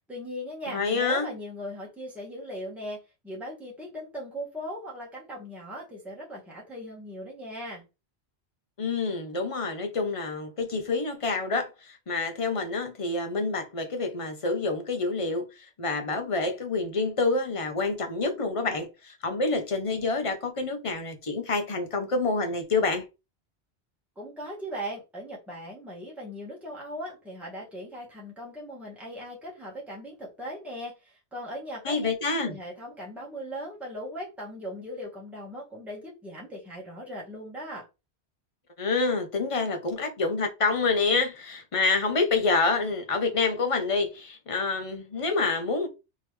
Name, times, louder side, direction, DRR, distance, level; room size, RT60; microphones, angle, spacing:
voice 1, 0.1-7.8 24.2-32.1 32.4-37.9, equal, ahead, 1.2 m, -39 dB
voice 2, 0.7-1.3 8.8-23.0 31.8-32.6 38.8-45.9, left 3 dB, 35° left, 0.7 m, -27 dB
3.7 x 3.0 x 3.1 m
omnidirectional pair, 1.1 m